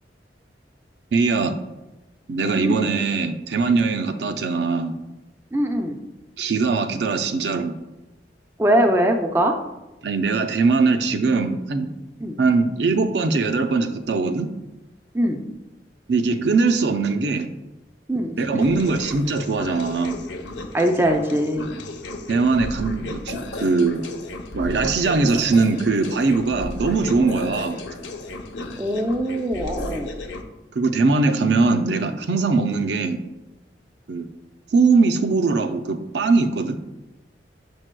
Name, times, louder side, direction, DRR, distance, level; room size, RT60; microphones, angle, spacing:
voice 1, 1.1-1.6 2.3-4.9 6.4-7.8 10.0-11.9 12.4-14.5 16.1-17.5 18.4-20.2 22.3-24.1 24.5-27.8 30.7-33.2 34.1-34.3 34.7-36.8, right 4 dB, 70° right, 7 dB, 0.5 m, -21 dB
voice 2, 2.5-2.9 5.5-6.0 8.6-9.5 12.2-12.4 15.1-15.4 18.1-18.8 20.7-21.7 28.8-30.1, right 1 dB, 15° right, 4 dB, 0.4 m, -22 dB
sound 1, 18.6-30.4, left 2 dB, 80° left, 0.6 m, -34 dB
6.9 x 6.1 x 2.2 m, 1.0 s
head